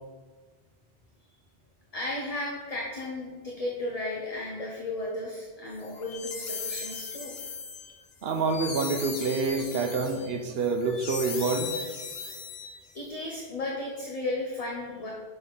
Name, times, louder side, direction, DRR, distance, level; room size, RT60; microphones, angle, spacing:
voice 1, 1.9-7.3 12.9-15.1, left 2 dB, 35° left, -2 dB, 0.9 m, -34 dB
sound 1, 5.8-13.1, left 5 dB, 65° left, 1.1 m, -38 dB
voice 2, 8.2-11.7, right 4 dB, 65° right, 6 dB, 0.9 m, -27 dB
6.3 x 4.1 x 5.4 m, 1.5 s
omnidirectional pair, 1.1 m